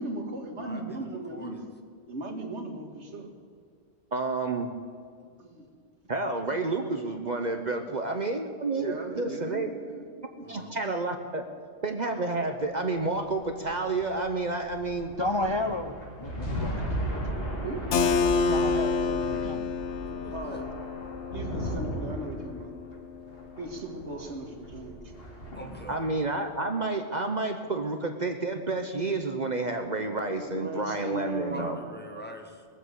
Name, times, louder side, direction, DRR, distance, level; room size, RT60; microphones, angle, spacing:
voice 1, 0.0-1.7 2.1-3.3 5.4-5.7 8.7-10.0 10.4-10.6 17.6-17.9 20.3-20.7 21.3-22.7 23.6-25.0 30.3-31.7, right 1 dB, 75° right, 3 dB, 2.0 m, -37 dB
voice 2, 0.6-1.7 5.2-5.3 10.4-10.7 20.0-20.7 24.1-24.4 25.5-26.0 31.5-32.7, equal, 10° left, 3 dB, 1.3 m, -44 dB
voice 3, 4.1-4.8 6.1-9.7 10.5-11.5 11.8-15.1 25.9-31.8, right 3 dB, 40° right, 5 dB, 0.9 m, -30 dB
sound 1, 12.8-26.4, right 1 dB, 55° left, 2.8 m, -37 dB
voice 4, 15.2-16.9 18.5-19.7, left 2 dB, 35° left, 6 dB, 0.5 m, -32 dB
Keyboard (musical), 17.9-23.5, left 5 dB, 75° left, 1.0 m, -29 dB
20.0 x 7.8 x 8.2 m, 2.1 s
omnidirectional pair, 1.2 m